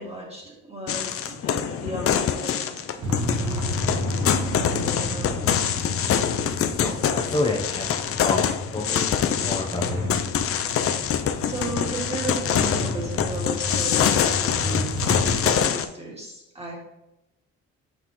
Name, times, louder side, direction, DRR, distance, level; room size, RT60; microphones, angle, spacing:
voice 1, 0.0-5.5 11.4-14.9 15.2-16.7, right 2 dB, 20° right, -2 dB, 2.1 m, -35 dB
sound 1, 0.9-15.9, left 8 dB, 50° left, 0.5 m, -25 dB
sound 2, 3.0-15.5, left 1 dB, 70° right, 1.6 m, -31 dB
voice 2, 6.8-10.0, left 2 dB, 15° left, -1 dB, 0.8 m, -29 dB
6.3 x 5.4 x 3.1 m, 0.91 s
cardioid pair, 90°, 30 cm